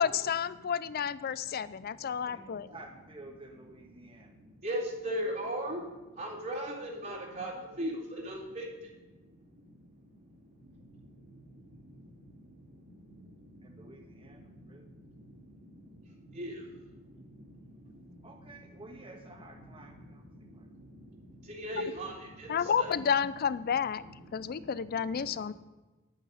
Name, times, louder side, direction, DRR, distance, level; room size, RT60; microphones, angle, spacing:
voice 1, 0.0-2.7 22.5-24.0 24.3-25.5, left 7 dB, 45° left, 16 dB, 0.4 m, -30 dB
voice 2, 1.3-2.3 4.1-18.8 19.6-23.0 23.9-25.5, equal, 45° right, -8 dB, 2.5 m, -42 dB
voice 3, 2.3-4.3 13.6-14.9 18.2-20.8, right 2 dB, 25° right, 2 dB, 1.6 m, -52 dB
10.0 x 8.8 x 5.6 m, 1.1 s
head